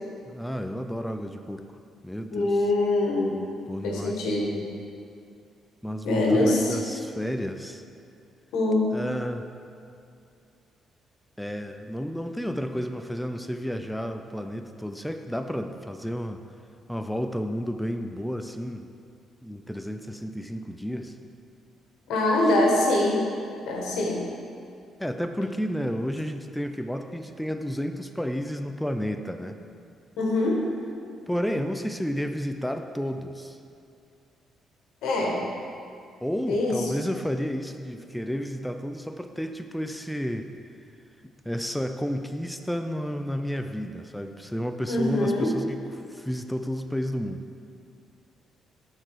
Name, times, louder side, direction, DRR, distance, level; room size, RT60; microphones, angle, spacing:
voice 1, 0.3-1.6 2.0-2.7 3.7-4.3 5.8-7.8 8.9-9.5 11.4-16.4 16.9-18.9 19.4-21.2 25.0-29.6 31.3-33.6 36.2-40.5 41.4-47.4, equal, 5° left, 6 dB, 0.4 m, -31 dB
voice 2, 2.3-3.4 3.8-4.6 6.0-6.8 8.5-8.8 22.1-23.2 23.6-24.2 30.2-30.6 35.0-35.4 36.5-36.9 44.9-45.5, left 2 dB, 85° left, -2 dB, 1.7 m, -23 dB
9.5 x 4.6 x 4.9 m, 2.5 s
cardioid pair, 90°, 0 cm